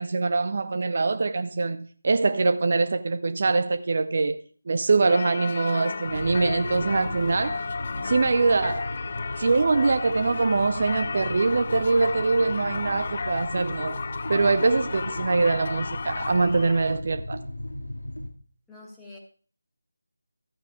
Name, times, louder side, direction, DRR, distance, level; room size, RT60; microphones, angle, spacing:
voice 1, 0.0-4.4 4.7-7.6 8.0-8.9 9.4-14.0 14.3-17.4, right 3 dB, 45° right, 0.5 m, -23 dB
Singing / Church bell, 5.1-17.0, left 4 dB, 40° left, 0.3 m, -34 dB
sound 1, 6.0-18.3, left 1 dB, 85° left, 2.0 m, -37 dB
voice 2, 16.7-17.0 18.7-19.2, left 2 dB, 5° left, 1.6 m, -48 dB
14.0 x 9.0 x 2.4 m
figure-of-eight pair, 165°, 0 cm